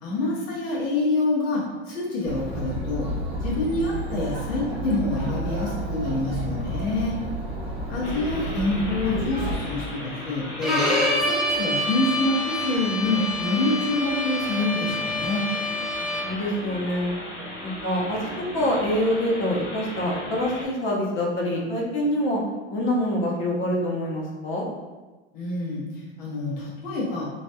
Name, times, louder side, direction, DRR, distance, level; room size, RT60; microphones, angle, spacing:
voice 1, 0.0-3.1 3.4-7.2 7.9-10.8 11.2-15.4 25.3-27.3, left 2 dB, 60° left, -6 dB, 1.3 m, -26 dB
Chatter, 2.2-9.6, right 1 dB, 15° right, 0.9 m, -31 dB
sound 1, 8.0-20.6, left 1 dB, 90° left, 0.9 m, -37 dB
Bowed string instrument, 10.6-16.5, left 1 dB, ahead, 0.5 m, -27 dB
voice 2, 15.9-17.1 17.6-22.4 22.7-24.7, left 1 dB, 35° left, -2 dB, 0.8 m, -26 dB
3.1 x 2.7 x 2.2 m, 1.2 s
supercardioid pair, 115°, 34 cm